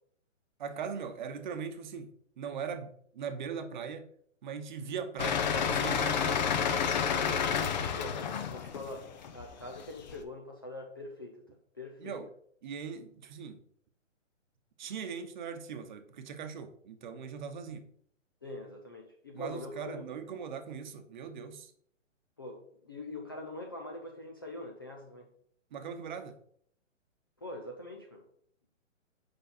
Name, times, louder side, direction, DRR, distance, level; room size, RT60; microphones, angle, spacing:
voice 1, 0.6-4.1 4.4-6.4 12.0-12.3 12.6-13.6 14.8-17.9 19.3-21.7 25.7-26.4, right 6 dB, 35° right, 7 dB, 1.0 m, -40 dB
sound 1, 5.2-10.2, left 7 dB, 35° left, 0.8 m, -30 dB
voice 2, 7.9-11.4 11.7-12.2 18.4-20.0 22.4-25.3 27.4-28.2, left 2 dB, 20° left, 1 dB, 0.4 m, -43 dB
8.4 x 5.5 x 4.4 m, 0.64 s
hypercardioid pair, 155°, 39 cm